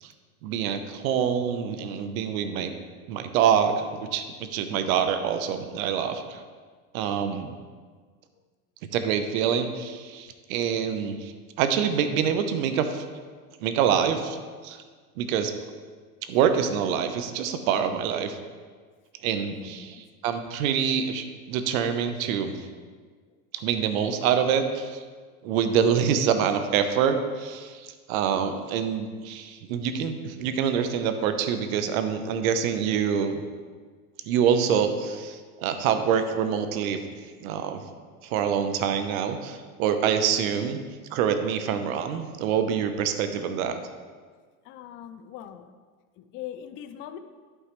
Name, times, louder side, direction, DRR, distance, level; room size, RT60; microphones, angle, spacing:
voice 1, 0.4-2.7 3.1-6.4 6.9-7.5 8.9-13.0 13.6-14.4 14.6-14.8 15.2-15.5 16.3-18.4 19.2-22.7 23.5-25.0 25.4-33.4 34.2-37.0 37.4-37.8 38.2-40.8 41.1-43.8, right 7 dB, 65° right, 8 dB, 0.9 m, -26 dB
voice 2, 19.5-20.0 44.7-45.7 46.2-47.2, left 10 dB, 30° left, 10 dB, 0.4 m, -41 dB
11.5 x 5.6 x 3.1 m, 1.5 s
hypercardioid pair, 105°, 44 cm